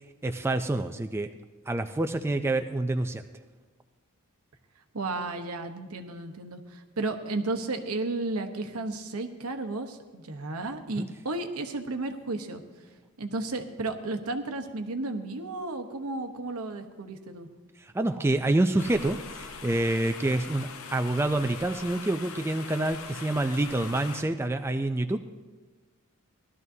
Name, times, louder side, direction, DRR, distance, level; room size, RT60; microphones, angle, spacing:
voice 1, 0.2-1.3 1.7-3.2 11.0-11.1 17.9-25.2, right 2 dB, 10° right, 7 dB, 0.3 m, -27 dB
voice 2, 4.9-12.6 13.2-17.5, right 2 dB, 80° right, 6 dB, 0.9 m, -33 dB
sound 1, 18.8-24.2, left 5 dB, 70° left, 0.7 m, -42 dB
17.5 x 12.5 x 2.7 m, 1.3 s
head